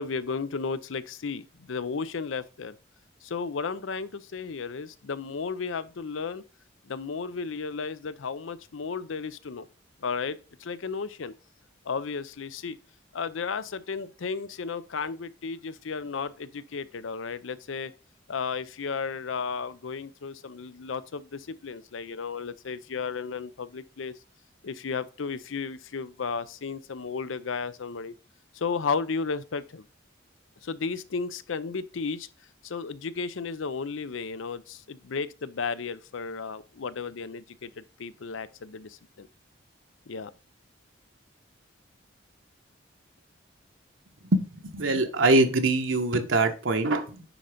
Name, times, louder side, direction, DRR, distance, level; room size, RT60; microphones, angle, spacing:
voice 1, 0.0-2.8 3.2-6.4 6.9-9.7 10.0-11.3 11.8-12.8 13.1-17.9 18.3-24.1 24.6-28.1 28.5-29.8 30.6-32.3 32.6-39.3 40.1-40.3, left 5 dB, 90° left, 0.6 m, -34 dB
voice 2, 44.3-47.2, right 2 dB, 85° right, 1.3 m, -23 dB
9.9 x 3.8 x 5.1 m
head